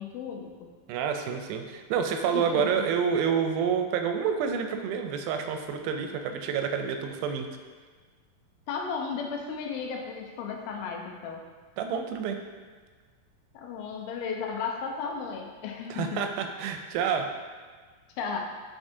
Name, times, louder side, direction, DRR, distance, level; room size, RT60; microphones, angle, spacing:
voice 1, 0.0-0.7 2.3-2.7 8.7-11.4 13.5-16.2 18.2-18.4, left 6 dB, 85° left, 2 dB, 2.6 m, -34 dB
voice 2, 0.9-7.5 11.8-12.4 15.9-17.3, right 7 dB, 90° right, 5 dB, 2.4 m, -28 dB
6.9 x 5.2 x 2.7 m, 1.5 s
omnidirectional pair, 4.2 m